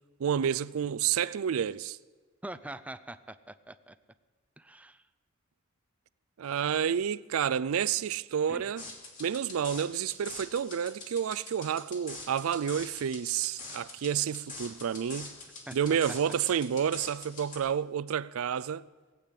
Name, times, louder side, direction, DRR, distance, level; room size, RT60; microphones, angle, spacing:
voice 1, 0.2-2.0 6.4-8.8 9.2-15.3 15.7-18.8, right 8 dB, 75° right, 0.4 m, -30 dB
voice 2, 2.4-4.0 4.6-5.0 8.5-8.6 15.7-15.8, right 1 dB, 5° right, 0.5 m, -43 dB
sound 1, 8.8-17.6, left 3 dB, 40° left, 2.8 m, -44 dB
19.0 x 8.5 x 8.2 m
head